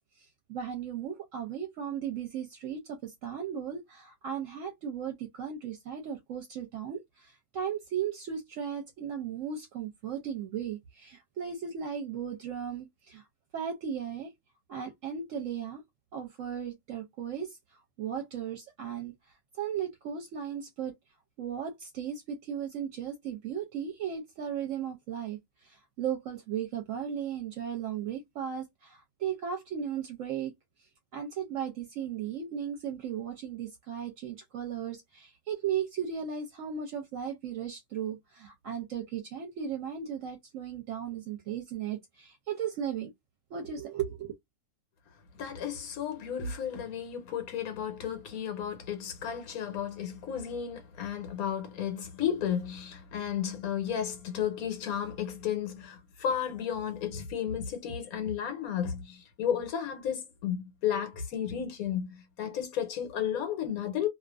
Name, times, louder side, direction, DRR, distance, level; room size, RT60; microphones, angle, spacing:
voice 1, 0.2-13.2 13.5-14.3 14.7-15.8 16.1-19.1 19.6-20.9 21.4-30.5 31.1-43.1 43.5-44.3, right 8 dB, 70° right, 0.9 m, -36 dB
voice 2, 45.4-64.1, left 8 dB, 80° left, 1.2 m, -33 dB
2.5 x 2.4 x 2.3 m
omnidirectional pair, 1.5 m